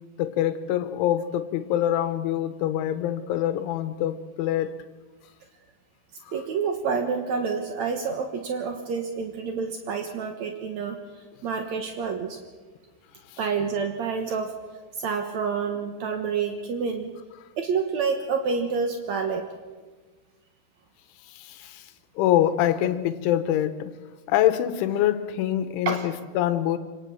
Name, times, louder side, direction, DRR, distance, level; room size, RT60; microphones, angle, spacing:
voice 1, 0.2-4.7 13.3-13.4 21.3-21.9 22.2-24.0 24.3-26.8, left 12 dB, 85° left, 11 dB, 3.4 m, -25 dB
voice 2, 6.3-11.0 11.4-12.4 13.4-14.5 14.9-17.1 17.6-19.5 25.8-26.1, right 5 dB, 75° right, 5 dB, 1.6 m, -28 dB
26.5 x 18.5 x 7.0 m, 1.3 s
omnidirectional pair, 5.3 m